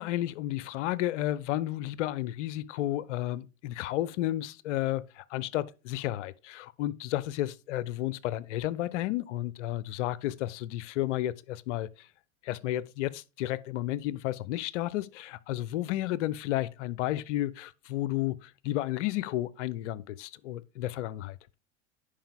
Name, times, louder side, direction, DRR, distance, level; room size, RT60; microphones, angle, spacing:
voice 1, 0.0-12.1 12.4-21.4, left 14 dB, 65° left, 0.6 m, -32 dB
10.0 x 4.9 x 3.5 m
hypercardioid pair, 85°, 39 cm